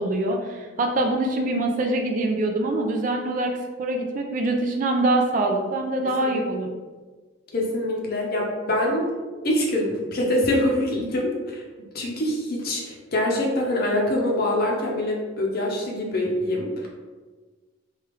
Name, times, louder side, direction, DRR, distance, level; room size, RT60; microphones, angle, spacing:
voice 1, 0.0-6.7, right 2 dB, 45° right, 3 dB, 0.4 m, -24 dB
voice 2, 6.0-6.4 7.5-9.1 9.4-11.6 11.9-16.9, left 1 dB, 50° left, -1 dB, 0.6 m, -24 dB
3.3 x 2.3 x 3.0 m, 1.4 s
head